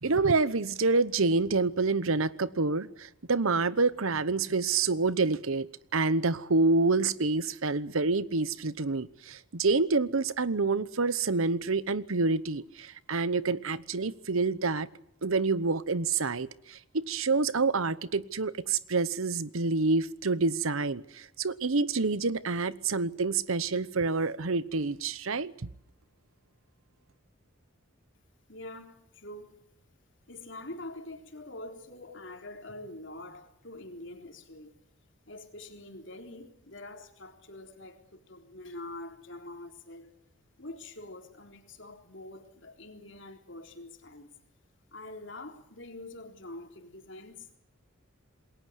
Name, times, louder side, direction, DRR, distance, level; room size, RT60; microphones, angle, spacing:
voice 1, 0.0-14.9 15.2-25.5, right 3 dB, 75° right, 1.0 m, -27 dB
voice 2, 28.5-29.6 30.3-34.8 35.3-40.1 40.6-44.3 44.9-47.6, left 2 dB, 60° left, 3.8 m, -45 dB
28.0 x 21.5 x 8.1 m
head